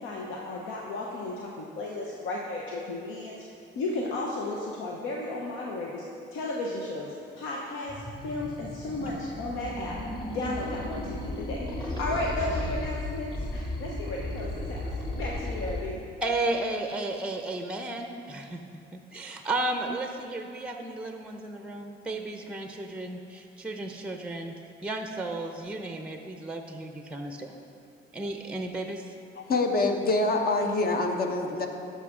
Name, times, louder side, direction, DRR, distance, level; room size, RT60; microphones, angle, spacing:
voice 1, 0.0-3.4 3.7-6.0 6.3-10.0 10.3-16.0, left 2 dB, 85° left, -2 dB, 0.8 m, -34 dB
sound 1, 7.9-15.8, left 1 dB, 20° left, 1.6 m, -35 dB
voice 2, 16.2-18.6 18.9-24.5 24.8-27.6 28.1-29.1, right 2 dB, 5° right, 5 dB, 0.6 m, -33 dB
voice 3, 29.4-31.7, left 2 dB, 50° left, 4 dB, 1.0 m, -25 dB
12.0 x 5.6 x 3.7 m, 2.5 s
cardioid pair, 90°, 20 cm